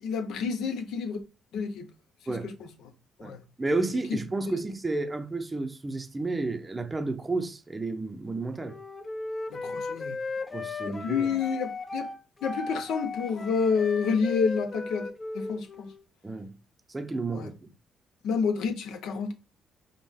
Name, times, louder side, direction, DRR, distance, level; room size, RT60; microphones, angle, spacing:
voice 1, 0.0-1.2 1.5-1.9 2.3-2.7 3.2-3.4 4.1-4.2 4.5-4.6 9.5-10.2 10.9-12.1 12.4-15.9 17.3-17.5 18.2-19.3, left 5 dB, 80° left, 0.6 m, -29 dB
voice 2, 3.2-8.8 10.5-11.3 16.2-16.5 16.9-17.5, right 3 dB, 20° right, 0.5 m, -31 dB
Wind instrument woodwind instrument, 8.6-16.0, left 3 dB, 30° left, 0.5 m, -36 dB
5.3 x 2.2 x 3.3 m
cardioid pair, 90°, 0 cm